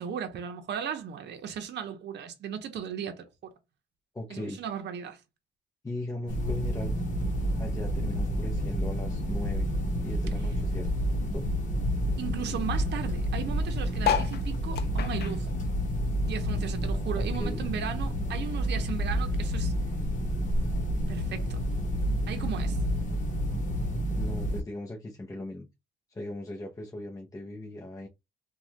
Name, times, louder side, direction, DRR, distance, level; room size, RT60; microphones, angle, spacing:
voice 1, 0.0-3.5 4.3-5.2 10.4-10.5 12.2-15.5 16.3-19.7 21.1-21.6 22.3-22.8, right 8 dB, 60° right, 0.7 m, -36 dB
voice 2, 4.1-4.6 5.8-7.0 7.6-9.7 10.0-10.9 11.3-11.4 17.1-17.7 24.1-25.7 26.1-28.1, left 1 dB, 15° left, 0.7 m, -38 dB
sound 1, 6.3-24.6, equal, 40° left, 1.1 m, -29 dB
sound 2, 14.0-16.7 17.1-18.6 19.1-19.2 19.4-19.5 19.6-20.0 20.8-20.9, left 9 dB, 55° left, 0.5 m, -33 dB
3.0 x 2.3 x 2.8 m
cardioid pair, 90°, 20 cm